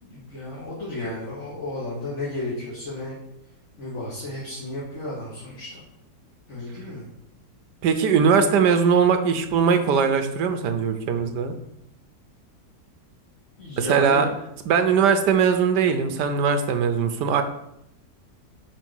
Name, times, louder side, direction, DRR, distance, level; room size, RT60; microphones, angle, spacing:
voice 1, 0.0-3.1 3.8-5.8 6.5-7.1 13.6-14.3, left 1 dB, 45° left, -7 dB, 2.1 m, -33 dB
voice 2, 7.8-11.5 13.8-14.3 14.7-17.4, right 6 dB, 85° right, 8 dB, 1.4 m, -20 dB
5.6 x 4.6 x 6.2 m, 0.80 s
omnidirectional pair, 1.8 m